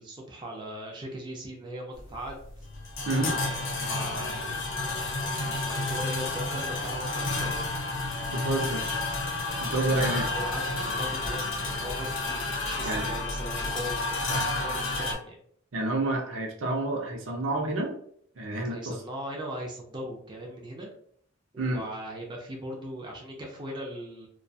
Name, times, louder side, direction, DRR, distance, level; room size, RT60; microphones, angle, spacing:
voice 1, 0.0-2.7 3.0-5.2 5.6-7.7 9.9-15.4 18.7-20.9 21.5-24.3, equal, 20° right, 0 dB, 0.4 m, -39 dB
sound 1, 2.0-15.1, left 2 dB, 65° left, 0.7 m, -31 dB
voice 2, 8.3-8.9 9.6-10.3 12.8-13.0 15.7-17.9 18.4-19.0 21.6-21.8, right 2 dB, 75° right, 1 dB, 0.6 m, -29 dB
2.3 x 2.2 x 2.6 m, 0.64 s
head